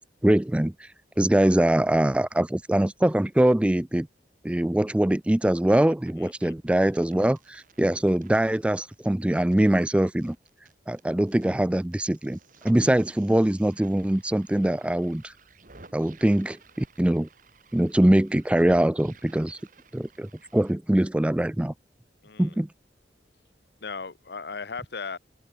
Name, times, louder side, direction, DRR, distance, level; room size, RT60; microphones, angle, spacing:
voice 1, 0.2-0.9 1.2-4.1 4.4-10.4 10.9-12.4 12.6-15.3 15.9-17.3 17.7-19.6 19.9-21.7 22.4-22.7, right 1 dB, 5° right, 0.3 m, -23 dB
sound 1, 5.6-6.1 6.4-11.5 11.7-20.7, right 4 dB, 50° right, 2.3 m, -55 dB
voice 2, 6.2-6.5 22.2-22.5 23.8-25.2, left 5 dB, 65° left, 0.8 m, -37 dB
open air
head